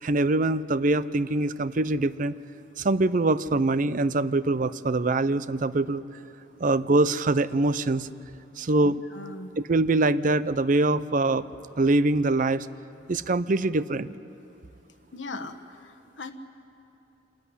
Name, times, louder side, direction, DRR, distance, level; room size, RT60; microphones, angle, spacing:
voice 1, 0.0-2.4 2.8-6.0 6.6-8.1 8.6-9.0 9.6-11.5 11.8-12.7 13.1-14.1, right 2 dB, 45° right, 15 dB, 0.5 m, -24 dB
voice 2, 8.8-9.5 15.1-16.3, left 2 dB, 70° left, 7 dB, 1.3 m, -40 dB
26.0 x 14.0 x 9.8 m, 2.7 s
head